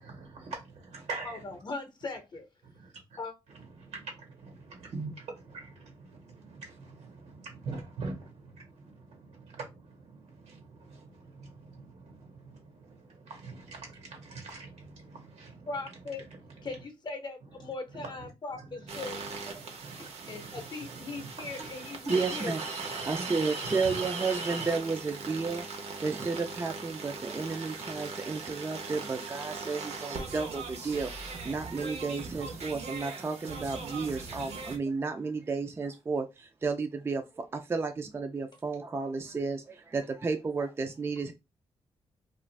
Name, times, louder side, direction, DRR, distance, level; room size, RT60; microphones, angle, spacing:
voice 1, 0.0-1.6 2.6-3.2 3.5-16.8 17.4-24.7, right 3 dB, 85° right, 1.2 m, -45 dB
voice 2, 1.3-2.5 3.2-3.3 15.7-16.2 16.6-19.2 20.0-22.0 22.3-22.5, left 3 dB, 40° left, 0.7 m, -39 dB
sound 1, 18.9-34.8, right 4 dB, 70° right, 0.8 m, -39 dB
voice 3, 22.1-22.6 23.1-25.7 26.0-31.1 31.4-41.3, right 4 dB, 20° right, 0.3 m, -32 dB
2.5 x 2.4 x 3.2 m
cardioid pair, 115°, 11 cm